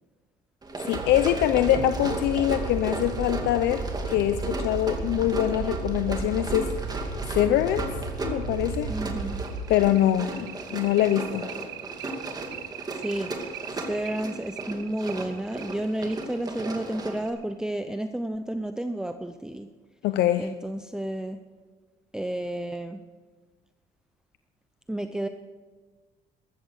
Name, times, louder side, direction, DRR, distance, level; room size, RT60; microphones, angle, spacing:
Run, 0.6-17.3, right 2 dB, 25° right, 2.4 m, -36 dB
voice 1, 0.9-6.7 7.0-7.9 8.2-8.9 9.7-11.5 20.0-20.5, left 12 dB, 80° left, 10 dB, 0.7 m, -24 dB
sound 1, 0.9-9.7, right 3 dB, 65° right, 4.0 m, -34 dB
sound 2, 1.8-4.9 6.4-6.5 6.9-7.0 7.4-7.5 7.9-18.0, right 11 dB, 90° right, 1.2 m, -42 dB
voice 2, 8.9-9.4 12.9-13.3 13.7-19.7 20.4-21.4 22.1-23.0 24.9-25.3, right 1 dB, 5° right, 8 dB, 0.6 m, -31 dB
14.0 x 13.5 x 6.6 m, 1.4 s
cardioid pair, 110°, 17 cm